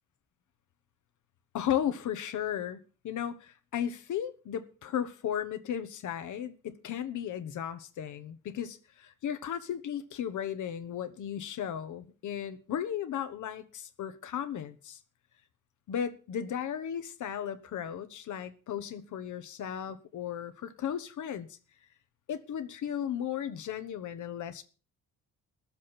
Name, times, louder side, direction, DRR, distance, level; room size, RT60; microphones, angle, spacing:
voice 1, 1.5-15.0 15.9-21.6 22.3-24.6, left 9 dB, 65° left, 1.2 m, -35 dB
20.5 x 7.3 x 4.4 m
cardioid pair, 140°, 32 cm